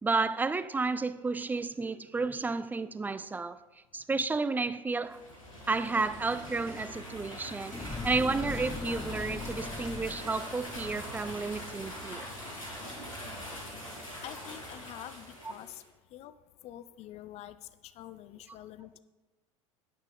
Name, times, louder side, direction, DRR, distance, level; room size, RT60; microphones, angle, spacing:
voice 1, 0.0-3.6 3.9-5.2 5.7-12.3 15.4-15.5, right 3 dB, 10° right, 0.4 m, -32 dB
sound 1, 5.0-15.8, equal, 80° left, 2.9 m, -42 dB
sound 2, 7.7-12.2 12.7-12.8, left 3 dB, 10° left, 1.0 m, -41 dB
voice 2, 13.9-15.8 16.1-16.3 16.6-17.6 18.0-19.0, left 12 dB, 40° left, 0.6 m, -46 dB
11.5 x 8.9 x 3.6 m
figure-of-eight pair, 75°, 17 cm